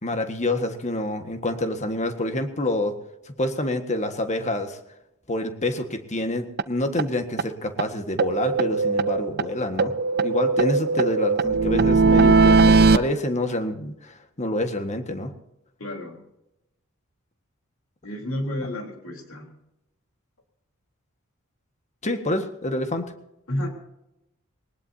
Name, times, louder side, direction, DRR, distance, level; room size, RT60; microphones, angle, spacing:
voice 1, 0.0-3.0 3.3-4.8 5.3-9.9 10.2-15.3 22.0-23.1, left 1 dB, 35° left, 7 dB, 1.6 m, -27 dB
sound 1, 6.6-6.7 7.0-7.1 7.4-7.5 7.8-7.9 8.2-9.5 9.8-13.0, right 4 dB, 50° right, 0.6 m, -19 dB
voice 2, 15.8-16.2 18.0-19.5 23.5-23.7, left 1 dB, 70° left, 2 dB, 3.7 m, -31 dB
21.5 x 19.5 x 2.8 m, 0.88 s
head